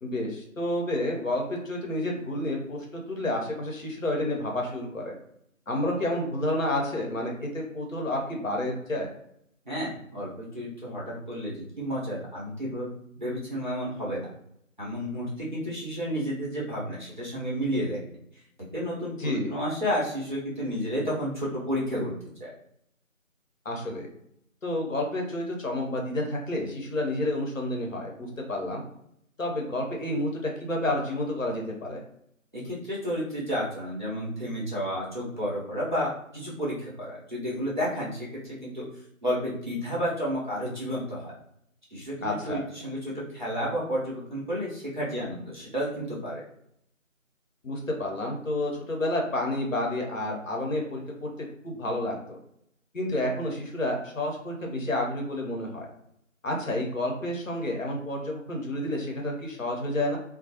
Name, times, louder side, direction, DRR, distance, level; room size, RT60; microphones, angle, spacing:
voice 1, 0.0-5.1 5.7-9.1 19.2-19.5 23.6-24.1 24.6-28.8 29.4-32.0 42.2-42.6 47.6-51.3 51.6-52.4 52.9-55.9 56.4-60.2, left 1 dB, 70° left, 0 dB, 0.8 m, -30 dB
voice 2, 9.6-14.3 14.8-18.0 18.7-22.1 22.4-22.5 32.5-38.9 39.2-41.3 41.9-42.1 42.5-46.4, equal, 35° right, -8 dB, 0.8 m, -31 dB
2.3 x 2.0 x 2.7 m, 0.74 s
figure-of-eight pair, 175°, 41 cm